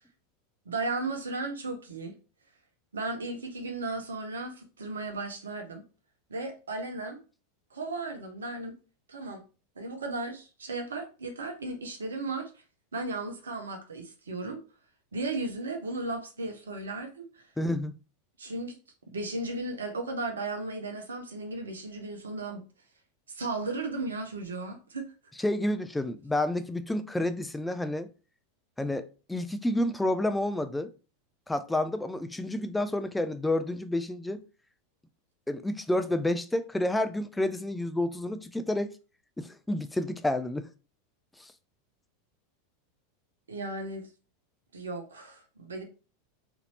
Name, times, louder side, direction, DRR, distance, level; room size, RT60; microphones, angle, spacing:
voice 1, 0.7-2.1 2.9-5.8 6.3-7.2 7.7-8.7 9.1-9.4 9.8-12.5 12.9-14.6 15.1-17.4 18.4-18.8 19.1-22.6 23.3-25.1 43.5-44.1 44.7-45.8, right 2 dB, 70° right, 0.8 m, -35 dB
voice 2, 17.6-18.0 25.4-28.1 28.8-30.9 31.5-34.4 35.5-38.9 39.4-40.7 41.4-41.5, left 1 dB, 5° left, 0.4 m, -29 dB
4.0 x 2.7 x 3.1 m
figure-of-eight pair, 85°, 0 cm